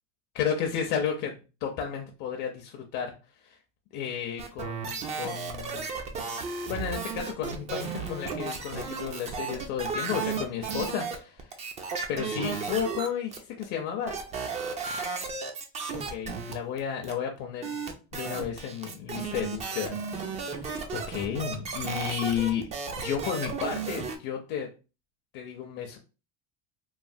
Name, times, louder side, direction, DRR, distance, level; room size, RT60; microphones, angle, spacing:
voice 1, 0.3-3.1 3.4-3.6 3.9-5.9 6.7-11.6 12.1-14.2 15.9-17.8 18.1-22.7 23.0-24.7 25.3-26.0, left 8 dB, 55° left, 2 dB, 0.6 m, -33 dB
sound 1, 4.4-13.6 14.1-16.8 17.0-17.1 17.6-24.2, right 5 dB, 20° right, 0.3 m, -34 dB
3.2 x 2.1 x 2.6 m, 0.31 s
supercardioid pair, 140°, 34 cm